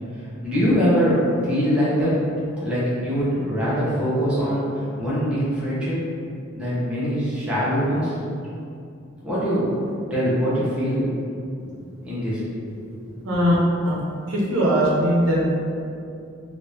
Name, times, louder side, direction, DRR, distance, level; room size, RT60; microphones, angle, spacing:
voice 1, 0.4-1.1 1.4-2.1 2.6-6.0 6.5-8.2 9.2-9.7 10.1-11.1 11.9-12.4 12.8-12.9, equal, 5° right, -11 dB, 0.9 m, -23 dB
voice 2, 13.2-13.5 13.9-14.0 14.3-15.4, equal, 80° right, -5 dB, 0.8 m, -20 dB
3.2 x 2.7 x 3.3 m, 2.5 s
head